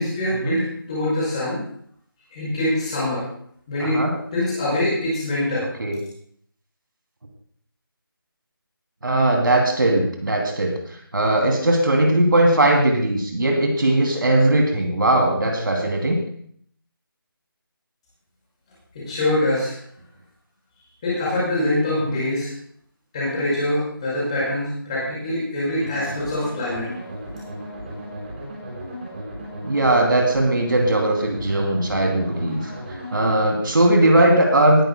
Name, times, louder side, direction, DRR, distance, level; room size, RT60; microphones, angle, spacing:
voice 1, 0.0-1.6 2.3-3.3 3.7-4.0 4.3-5.7 18.9-19.7 21.0-22.5 23.1-26.9, left 1 dB, 15° left, -7 dB, 5.3 m, -24 dB
voice 2, 9.0-16.2 22.1-22.2 29.6-34.9, right 1 dB, 60° right, 1 dB, 2.8 m, -19 dB
sound 1, 25.8-33.4, equal, 25° right, 4.5 m, -35 dB
19.0 x 12.0 x 2.2 m, 0.63 s
figure-of-eight pair, 175°, 12 cm